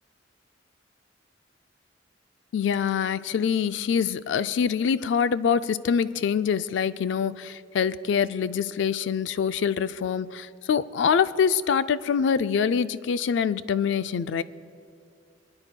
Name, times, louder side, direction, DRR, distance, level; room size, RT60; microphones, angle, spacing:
voice 1, 2.5-14.4, left 7 dB, 70° left, 15 dB, 0.3 m, -25 dB
25.0 x 9.6 x 2.2 m, 2.6 s
head